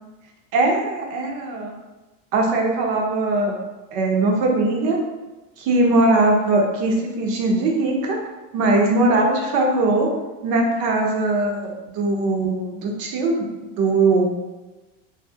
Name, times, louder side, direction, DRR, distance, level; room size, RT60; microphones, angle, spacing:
voice 1, 0.5-1.7 2.3-3.6 3.9-5.0 5.6-8.2 8.5-10.1 10.4-14.3, right 2 dB, 55° right, 0 dB, 0.7 m, -20 dB
2.5 x 2.4 x 2.7 m, 1.1 s
supercardioid pair, 140°, 41 cm